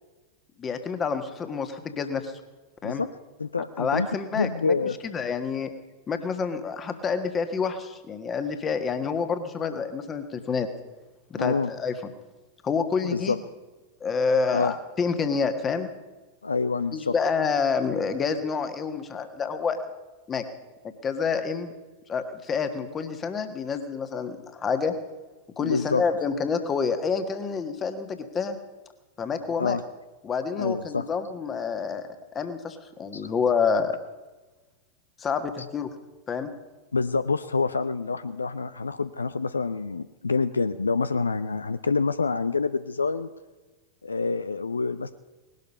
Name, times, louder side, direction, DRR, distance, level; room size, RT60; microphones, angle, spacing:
voice 1, 0.6-2.3 2.8-3.0 3.8-4.7 5.1-5.7 6.1-10.7 11.3-11.9 12.6-13.4 14.0-15.9 16.9-19.9 20.3-20.4 21.0-21.7 22.1-24.9 25.6-28.6 29.2-29.8 30.2-34.0 35.2-35.9 36.3-36.5, left 5 dB, 25° left, 9 dB, 1.5 m, -28 dB
voice 2, 3.4-4.1 4.3-5.0 11.4-11.7 13.0-13.4 14.5-14.7 16.4-17.1 25.6-26.0 29.6-29.8 30.6-31.1 33.1-33.3 36.9-43.3 44.0-45.1, left 4 dB, 75° left, 13 dB, 0.5 m, -27 dB
19.0 x 12.0 x 5.5 m, 1.2 s
figure-of-eight pair, 90°, 0 cm